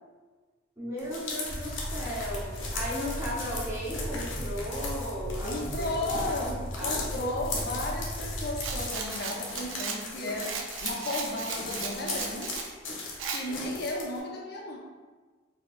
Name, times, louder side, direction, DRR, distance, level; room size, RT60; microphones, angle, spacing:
voice 1, 0.8-7.3 12.8-13.0 13.5-13.7, equal, 15° right, -7 dB, 0.9 m, -36 dB
sound 1, 1.0-14.2, left 3 dB, 85° left, 0.8 m, -38 dB
sound 2, 1.5-8.8, equal, 60° right, 1.0 m, -37 dB
voice 2, 5.4-12.6 13.3-14.8, left 1 dB, 55° left, 0 dB, 0.6 m, -34 dB
Rattle, 8.6-12.7 13.2-13.4, right 5 dB, 85° right, 0.5 m, -36 dB
4.4 x 2.8 x 2.4 m, 1.4 s
head